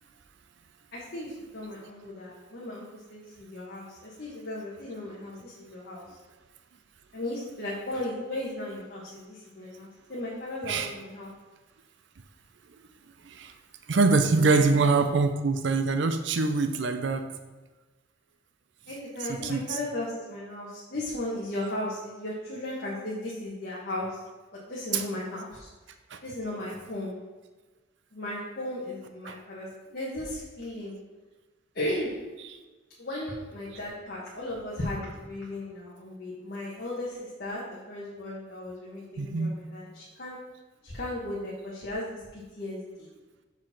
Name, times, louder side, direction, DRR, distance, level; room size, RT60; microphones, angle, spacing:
voice 1, 0.9-6.2 7.1-11.3 14.4-14.6 18.9-24.2 24.7-25.7 26.2-27.2 28.1-29.7 29.9-31.0 31.7-32.2 33.0-40.4 40.8-43.1, left 1 dB, 50° left, -6 dB, 1.3 m, -36 dB
voice 2, 13.9-17.3 19.3-19.8 24.9-25.0 26.1-26.2 29.3-29.4 39.2-39.6, right 4 dB, 65° right, 8 dB, 0.5 m, -24 dB
6.0 x 4.9 x 5.7 m, 1.2 s
head